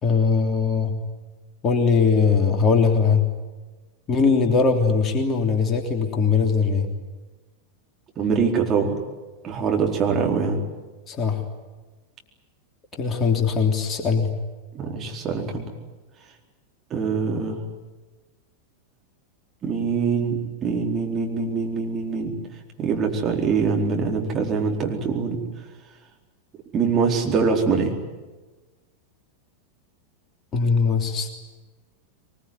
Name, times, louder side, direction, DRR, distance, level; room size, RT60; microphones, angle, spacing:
voice 1, 0.0-1.0 1.6-3.2 4.1-6.9 11.1-11.4 13.0-14.3 30.5-31.3, left 5 dB, 25° left, 4 dB, 3.2 m, -20 dB
voice 2, 8.2-9.0 9.4-10.6 14.7-15.7 16.9-17.6 19.6-22.4 22.8-25.5 26.7-28.0, right 5 dB, 25° right, 1 dB, 4.4 m, -23 dB
23.0 x 21.5 x 9.8 m, 1.2 s
figure-of-eight pair, 90°, 0 cm